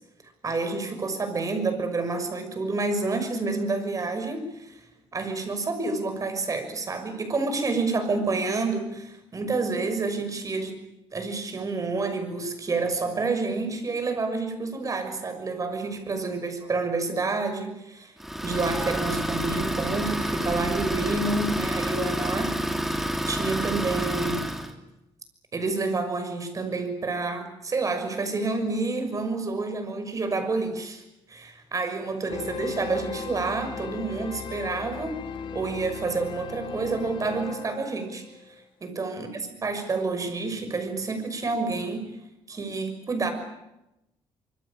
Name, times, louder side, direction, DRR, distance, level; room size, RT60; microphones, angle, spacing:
voice 1, 0.4-4.8 5.1-10.8 11.1-18.1 18.4-22.5 22.9-24.4 25.5-31.0 31.3-35.2 35.5-38.2 38.8-42.1 42.5-43.3, right 3 dB, 35° right, 7 dB, 6.3 m, -29 dB
Idling, 18.2-24.7, equal, 5° right, 2.9 m, -28 dB
sound 1, 32.3-38.6, left 6 dB, 55° left, 1.9 m, -38 dB
25.5 x 24.0 x 8.9 m, 0.91 s
cardioid pair, 115°, 10 cm